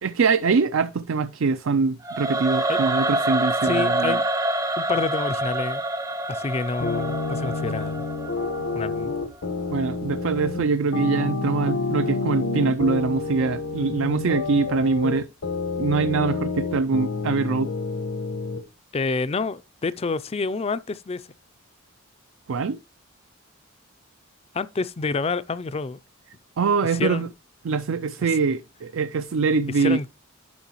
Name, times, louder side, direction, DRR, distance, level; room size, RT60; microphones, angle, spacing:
voice 1, 0.0-4.2 9.7-15.3 15.8-17.7 22.5-22.8 26.6-27.3 27.6-30.0, right 4 dB, 65° right, 0.4 m, -23 dB
Singing / Musical instrument, 2.0-9.1, right 1 dB, 15° right, 0.6 m, -26 dB
voice 2, 3.6-4.2 4.8-5.8 6.3-8.1 8.7-9.1 18.9-21.3 24.5-26.0 26.8-27.3 28.2-28.3 29.8-30.1, left 4 dB, 30° left, 0.4 m, -28 dB
sound 1, 6.8-18.6, left 3 dB, 85° left, 1.3 m, -28 dB
10.5 x 6.2 x 3.0 m
head